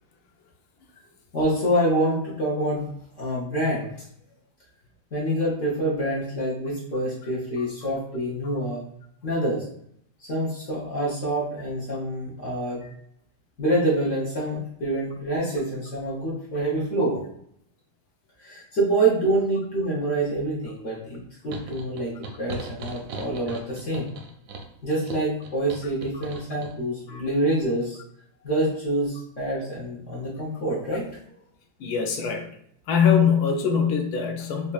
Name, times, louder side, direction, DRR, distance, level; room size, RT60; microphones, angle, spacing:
voice 1, 1.3-2.8 3.2-3.9 5.1-8.8 9.2-9.6 10.2-12.8 13.6-17.2 18.4-24.1 24.8-28.0 28.4-31.1, right 1 dB, 50° left, -6 dB, 1.2 m, -26 dB
voice 2, 7.6-7.9 8.4-8.6 12.8-12.9 27.1-27.2 31.8-32.5 32.9-34.7, left 7 dB, 75° left, 3 dB, 1.0 m, -23 dB
sound 1, 21.5-26.7, right 3 dB, 70° right, 0.9 m, -39 dB
4.4 x 2.6 x 2.3 m, 0.70 s
omnidirectional pair, 1.8 m